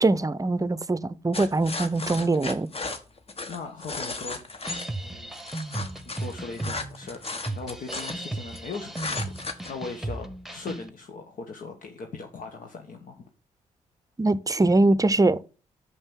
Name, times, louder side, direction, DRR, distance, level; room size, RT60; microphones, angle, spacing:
voice 1, 0.0-2.7 14.2-15.4, right 2 dB, 20° right, 0.6 m, -22 dB
sound 1, 1.3-4.9 5.3-8.6 8.9-9.7, left 3 dB, 40° left, 1.5 m, -35 dB
voice 2, 3.5-4.6 5.0-5.4 6.0-13.2, left 4 dB, 60° left, 1.3 m, -39 dB
sound 2, 4.6-10.9, right 2 dB, ahead, 1.2 m, -36 dB
6.7 x 5.4 x 7.2 m
supercardioid pair, 50°, 15 cm